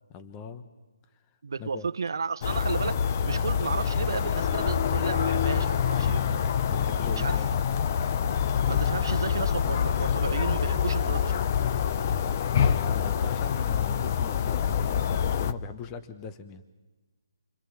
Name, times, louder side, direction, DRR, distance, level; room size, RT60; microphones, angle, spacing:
voice 1, 0.1-0.7 1.1-1.2 1.6-1.9 6.7-7.5 12.5-16.6, left 6 dB, 20° left, 1.2 m, -40 dB
voice 2, 1.4-6.5 7.2-7.4 8.7-11.5, right 5 dB, 65° right, 1.1 m, -33 dB
sound 1, 2.4-15.5, left 8 dB, 35° left, 0.8 m, -26 dB
sound 2, 3.7-9.3, left 1 dB, 90° left, 6.6 m, -50 dB
29.0 x 25.5 x 7.4 m
hypercardioid pair, 160°, 2 cm